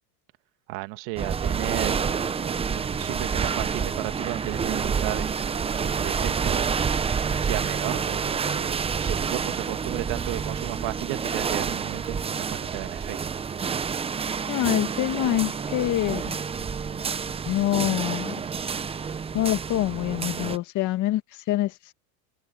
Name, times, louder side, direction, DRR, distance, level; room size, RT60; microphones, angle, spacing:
voice 1, 0.7-7.0 7.4-13.2 13.6-13.8, right 23 dB, 60° right, 1.9 m, -34 dB
sound 1, 1.2-20.6, right 6 dB, 15° right, 0.7 m, -28 dB
voice 2, 14.5-16.4 17.5-18.3 19.3-21.9, left 14 dB, 40° left, 2.0 m, -26 dB
sound 2, 14.9-20.5, left 18 dB, 80° left, 7.5 m, -55 dB
supercardioid pair, 130°, 44 cm